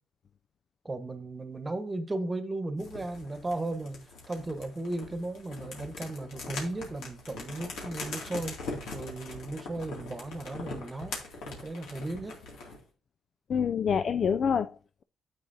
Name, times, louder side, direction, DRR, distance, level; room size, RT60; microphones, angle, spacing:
voice 1, 0.8-4.0 4.3-8.5 8.9-11.2 11.5-12.4, right 2 dB, 20° right, 1.2 m, -35 dB
sound 1, 2.8-12.8, left 3 dB, 80° left, 2.4 m, -42 dB
voice 2, 13.5-15.0, left 7 dB, 50° left, 0.3 m, -27 dB
9.6 x 7.2 x 2.7 m
cardioid pair, 90°, 0 cm